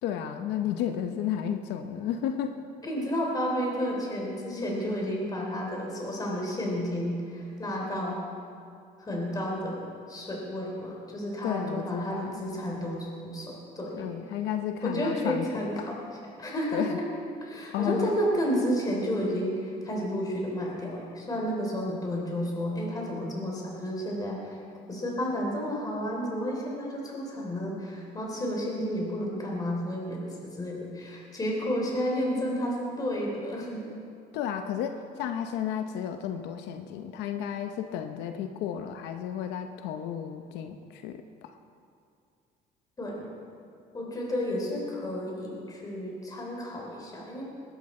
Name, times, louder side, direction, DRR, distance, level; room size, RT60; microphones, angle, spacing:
voice 1, 0.0-2.6 11.4-12.3 13.9-16.0 16.7-17.0 17.7-18.1 34.3-41.6, left 9 dB, 90° left, 7 dB, 0.7 m, -32 dB
voice 2, 2.8-8.2 9.0-9.8 10.1-14.1 14.8-16.0 16.4-17.0 17.4-24.6 24.9-33.8 43.0-43.3 43.9-47.4, equal, 20° left, -2 dB, 3.3 m, -31 dB
20.5 x 11.5 x 4.3 m, 2.4 s
cardioid pair, 110°, 17 cm